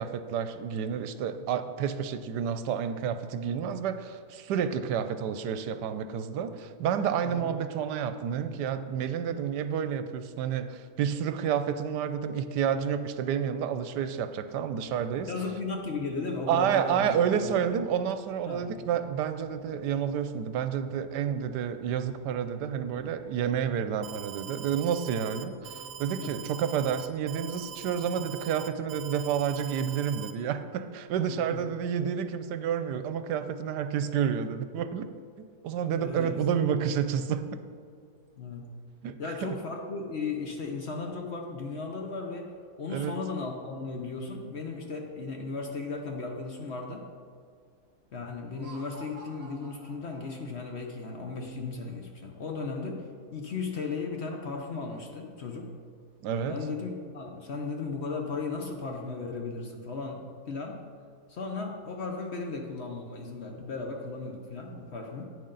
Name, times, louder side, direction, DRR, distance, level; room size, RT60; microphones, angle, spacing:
voice 1, 0.0-15.3 16.5-35.1 35.4-37.5 39.0-39.6 42.9-43.2 56.2-56.6, right 8 dB, 85° right, 10 dB, 1.2 m, -30 dB
sound 1, 13.9-29.2, right 1 dB, 20° right, 3.0 m, -55 dB
voice 2, 15.3-17.5 18.5-18.6 26.2-26.5 31.3-31.6 35.9-36.4 38.4-38.7 39.2-42.5 42.8-47.1 48.1-53.1 53.3-55.7 56.5-60.8 61.3-65.2, left 4 dB, 50° left, 2 dB, 0.9 m, -36 dB
Alarm, 24.0-30.3, right 9 dB, 65° right, 0.9 m, -43 dB
Laughter, 48.4-50.8, right 3 dB, 40° right, 1.3 m, -50 dB
10.5 x 8.8 x 3.9 m, 2.1 s
omnidirectional pair, 1.8 m